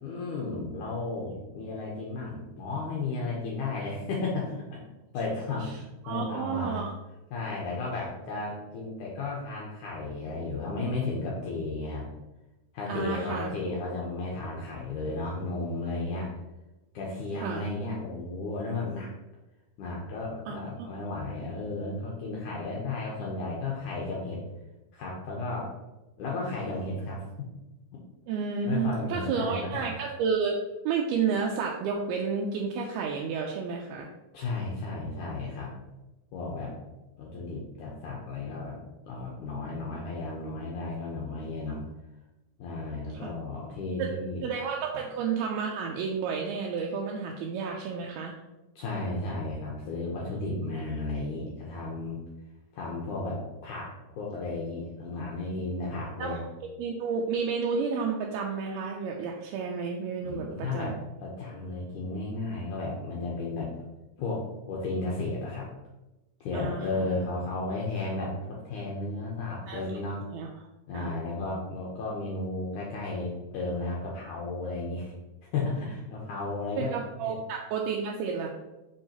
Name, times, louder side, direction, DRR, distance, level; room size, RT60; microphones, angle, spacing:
voice 1, 0.0-4.8 5.1-5.7 6.1-6.8 7.3-12.1 12.7-16.3 16.9-19.1 19.8-24.4 24.9-25.7 26.2-27.3 28.7-29.9 34.3-35.7 36.3-36.7 37.2-38.8 39.1-41.8 42.6-44.4 44.9-45.0 48.8-52.2 52.7-56.4 60.2-63.7 64.2-65.7 66.4-70.2 70.9-75.1 75.5-76.9 77.2-77.4, left 3 dB, 85° left, -3 dB, 1.8 m, -34 dB
voice 2, 6.0-6.9 12.9-13.5 17.4-17.6 20.5-20.9 28.3-30.6 30.9-34.1 43.2-43.3 44.0-44.1 44.4-48.4 56.2-56.4 56.8-60.9 66.5-67.1 69.7-69.8 70.3-70.5 70.9-71.1 76.8-78.5, right 5 dB, 80° right, 0 dB, 2.3 m, -31 dB
6.2 x 5.4 x 2.9 m, 1.0 s
omnidirectional pair, 4.8 m